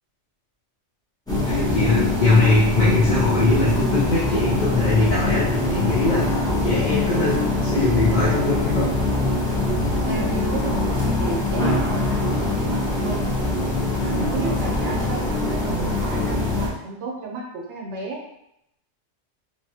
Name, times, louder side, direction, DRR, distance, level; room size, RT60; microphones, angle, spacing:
sound 1, 1.3-16.7, left 2 dB, 5° left, 0.7 m, -23 dB
voice 1, 1.5-6.2 6.6-8.9, left 3 dB, 50° left, -7 dB, 0.6 m, -21 dB
voice 2, 10.1-13.3 14.0-18.2, right 3 dB, 75° right, -2 dB, 1.0 m, -32 dB
2.8 x 2.3 x 2.7 m, 0.79 s
omnidirectional pair, 1.2 m